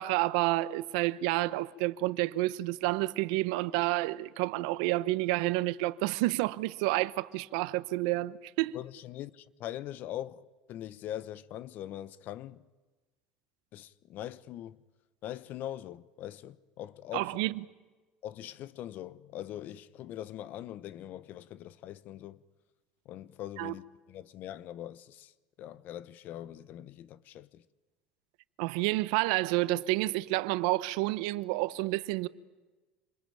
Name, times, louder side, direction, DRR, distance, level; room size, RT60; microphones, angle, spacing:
voice 1, 0.0-8.8 17.1-17.6 23.6-23.7 28.6-32.3, right 19 dB, 75° right, 0.9 m, -29 dB
voice 2, 8.7-12.7 13.7-14.8 15.2-17.5 18.2-22.4 23.0-25.3 25.6-27.6, left 12 dB, 55° left, 1.0 m, -42 dB
27.0 x 20.5 x 9.0 m
supercardioid pair, 95°, 4 cm